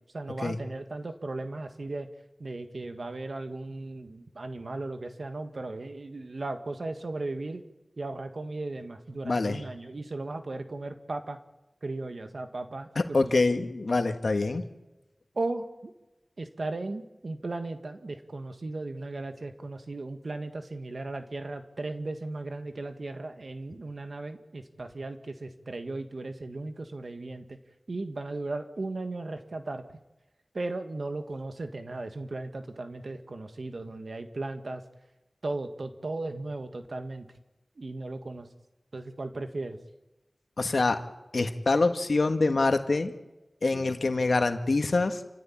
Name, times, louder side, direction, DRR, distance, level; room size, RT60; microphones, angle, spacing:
voice 1, 0.0-2.1 2.4-7.6 8.0-11.4 11.8-13.4 15.4-15.9 16.4-27.6 27.9-29.8 30.5-34.8 35.4-37.3 37.8-38.5 38.9-39.8 43.7-44.0, right 2 dB, 75° right, 7 dB, 1.8 m, -36 dB
voice 2, 9.2-9.6 12.9-14.6 40.6-41.0 41.3-43.1 43.6-45.2, left 3 dB, 80° left, 7 dB, 1.6 m, -25 dB
28.5 x 14.5 x 8.7 m, 1.0 s
wide cardioid pair, 55°, 0 cm